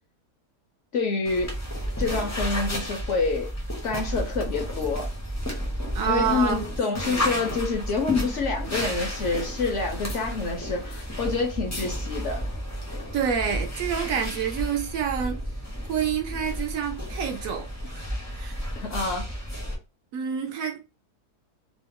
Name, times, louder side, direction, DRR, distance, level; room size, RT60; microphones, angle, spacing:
voice 1, 0.9-1.6 2.0-3.5 3.8-5.1 6.1-12.4 18.7-19.2, left 4 dB, 60° left, 0.8 m, -27 dB
sound 1, 1.2-19.7, equal, 20° left, 0.5 m, -32 dB
voice 2, 5.9-6.7 7.0-7.3 13.1-15.4 15.9-18.0 18.3-18.6 20.1-20.8, right 7 dB, 70° right, 0.9 m, -28 dB
3.0 x 2.0 x 3.5 m
omnidirectional pair, 1.7 m